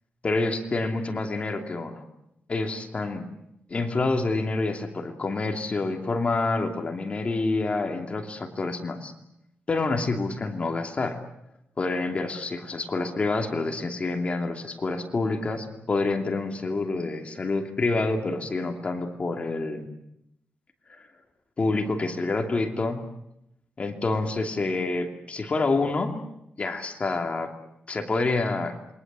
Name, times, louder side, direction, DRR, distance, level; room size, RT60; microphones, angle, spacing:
voice 1, 0.2-2.0 2.5-3.3 3.7-9.1 9.7-11.2 11.8-19.9 21.6-23.0 23.8-26.2 26.6-27.5 27.9-28.8, left 3 dB, 35° left, 4 dB, 2.8 m, -27 dB
28.0 x 23.0 x 7.6 m, 0.78 s
wide cardioid pair, 135°, 4 cm